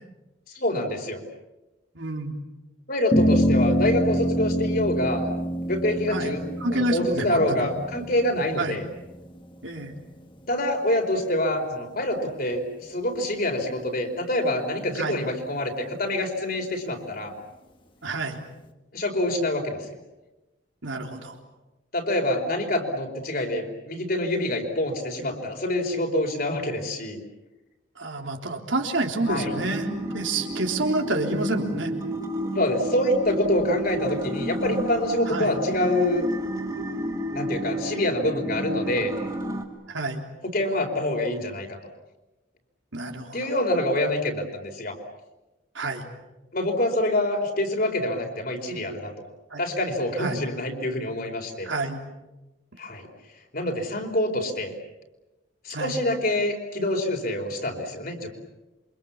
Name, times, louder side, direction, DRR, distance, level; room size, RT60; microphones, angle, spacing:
voice 1, 0.5-1.2 2.9-5.3 5.6-6.4 6.7-8.9 10.5-17.3 18.9-20.0 21.9-27.2 29.3-29.5 32.4-36.3 37.3-39.1 40.4-41.8 43.3-45.0 46.5-49.1 49.6-51.7 52.8-53.1 53.5-54.7 55.6-58.3, left 1 dB, 50° left, 2 dB, 4.6 m, -26 dB
voice 2, 1.9-2.3 6.1-6.3 6.6-7.7 8.6-8.8 9.6-9.9 15.0-15.2 18.0-18.4 20.8-21.3 28.0-31.9 35.3-35.5 39.9-40.2 42.9-43.4 45.7-46.0 49.5-49.6 50.2-50.4 51.6-52.0 55.7-56.0, right 2 dB, 80° right, 3 dB, 3.5 m, -28 dB
sound 1, 3.1-9.7, equal, 25° left, 2.2 m, -26 dB
sound 2, 29.3-39.6, right 1 dB, 20° right, 2.9 m, -31 dB
28.0 x 25.0 x 7.2 m, 1.0 s
head